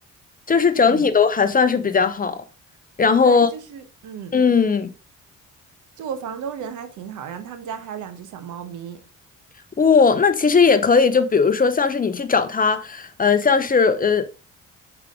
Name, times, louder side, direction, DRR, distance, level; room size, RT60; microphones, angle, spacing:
voice 1, 0.5-2.4 3.0-3.5 4.3-4.9 9.8-14.2, left 5 dB, 30° left, 0.7 m, -18 dB
voice 2, 3.2-4.3 6.0-9.0, right 7 dB, 80° right, 1.1 m, -34 dB
6.5 x 4.9 x 3.6 m
cardioid pair, 90°, 30 cm